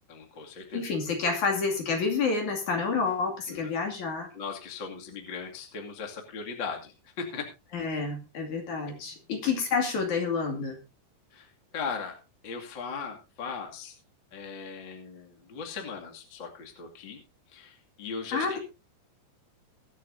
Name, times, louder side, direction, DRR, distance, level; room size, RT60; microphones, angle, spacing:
voice 1, 0.1-0.8 3.5-3.7 4.3-7.5 11.3-12.1 12.4-13.9 14.3-17.2 17.5-18.6, left 5 dB, 35° left, 2 dB, 2.4 m, -38 dB
voice 2, 0.7-4.3 7.7-10.8 18.3-18.6, left 4 dB, 50° left, 3 dB, 3.5 m, -29 dB
23.0 x 8.4 x 2.7 m, 0.29 s
omnidirectional pair, 4.7 m